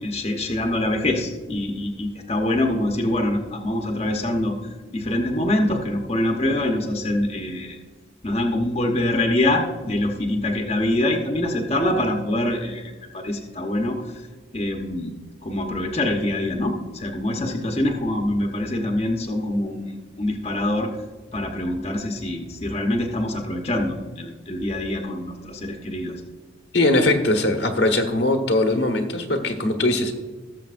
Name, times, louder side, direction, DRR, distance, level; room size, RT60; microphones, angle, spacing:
voice 1, 0.0-4.5 4.9-7.8 8.2-14.1 14.5-15.1 15.4-20.9 21.3-26.1, left 1 dB, 35° left, 2 dB, 0.9 m, -24 dB
voice 2, 26.7-30.1, left 2 dB, 70° left, 4 dB, 1.2 m, -20 dB
18.5 x 7.1 x 2.5 m, 1.3 s
head